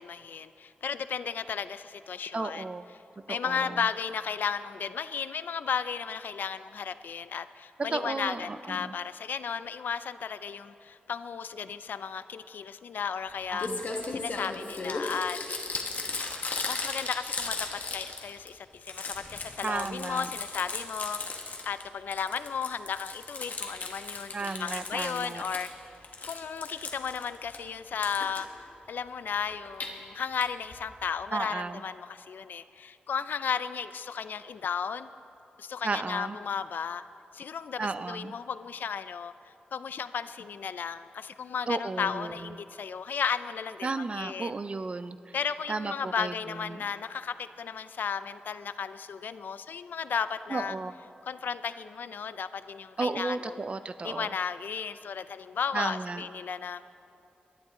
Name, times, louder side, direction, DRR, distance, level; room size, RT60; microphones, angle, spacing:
voice 1, 0.0-2.7 3.3-13.7 14.1-15.4 16.7-21.3 21.7-25.7 26.2-35.1 35.6-37.0 37.3-39.3 39.7-43.9 44.1-44.5 45.3-50.7 51.3-53.5 54.0-56.8, left 6 dB, 80° left, 13 dB, 0.4 m, -34 dB
voice 2, 2.3-2.8 3.3-3.8 7.9-8.9 13.5-13.8 19.6-20.3 24.3-25.4 31.3-31.8 35.8-36.4 37.8-38.3 41.7-42.5 43.8-45.4 45.7-46.9 50.5-50.9 53.0-54.3 55.7-56.2, right 3 dB, 40° right, 12 dB, 0.5 m, -34 dB
Crumpling crinkling, 13.3-13.4 13.6-18.5 18.8-21.8 22.1-25.7 26.0-27.6 28.0-28.4 29.5-29.9 30.4-30.5 30.7-30.8 31.0-31.1, left 3 dB, 60° left, 1.6 m, -36 dB
22.0 x 12.0 x 3.8 m, 2.7 s
wide cardioid pair, 95°, 3 cm